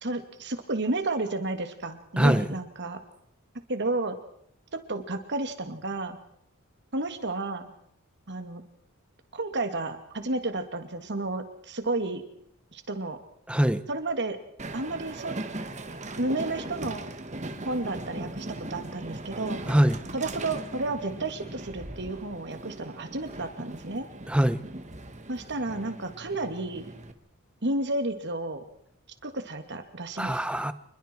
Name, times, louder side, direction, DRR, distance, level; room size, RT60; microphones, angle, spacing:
voice 1, 0.0-3.0 3.7-4.2 4.7-6.2 6.9-7.7 8.3-8.6 9.3-12.2 12.7-13.2 13.9-14.4 14.7-15.4 16.2-17.0 17.7-19.6 20.1-24.1 25.3-26.8 27.6-28.6 29.2-30.4, right 2 dB, 55° right, 2.6 m, -31 dB
voice 2, 2.2-2.6 13.5-13.8 19.7-20.0 24.3-24.6 30.2-30.7, equal, 5° right, 0.9 m, -23 dB
Train, 14.6-27.1, right 2 dB, 35° right, 1.7 m, -39 dB
28.0 x 21.5 x 4.7 m
head